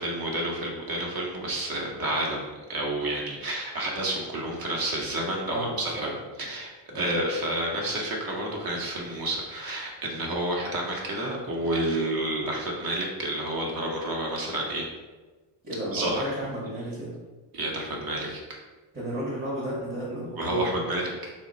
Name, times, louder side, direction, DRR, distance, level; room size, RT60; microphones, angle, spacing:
voice 1, 0.0-2.4 2.7-6.1 6.4-14.9 15.9-16.3 17.5-18.6 20.4-21.3, right 1 dB, 45° right, -1 dB, 0.9 m, -30 dB
voice 2, 5.5-6.1 6.9-7.1 15.6-17.2 18.9-20.7, right 1 dB, 15° right, -8 dB, 0.9 m, -33 dB
3.0 x 2.1 x 3.9 m, 1.3 s
cardioid pair, 105°, 50 cm